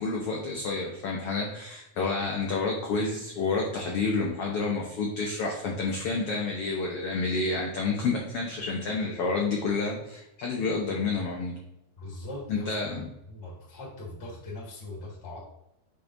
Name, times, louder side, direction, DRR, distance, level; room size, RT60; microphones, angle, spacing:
voice 1, 0.0-11.6 12.5-13.1, left 3 dB, 70° left, -1 dB, 1.4 m, -29 dB
voice 2, 12.0-12.7 13.3-15.4, left 2 dB, 25° left, -4 dB, 1.6 m, -40 dB
7.3 x 5.1 x 2.6 m, 0.86 s
omnidirectional pair, 3.7 m